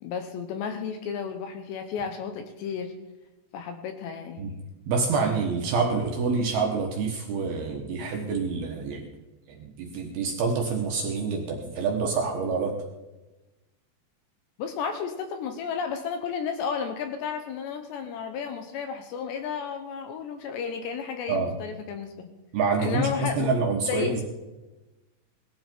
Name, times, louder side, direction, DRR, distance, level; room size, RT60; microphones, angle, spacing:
voice 1, 0.0-2.9 3.5-4.6 14.6-22.3 22.8-23.6 23.9-24.2, left 6 dB, 75° left, 6 dB, 2.8 m, -33 dB
voice 2, 4.9-9.1 9.5-12.7 21.3-21.5 22.5-24.2, right 4 dB, 70° right, 2 dB, 2.5 m, -27 dB
18.5 x 13.0 x 4.5 m, 1.1 s
omnidirectional pair, 5.7 m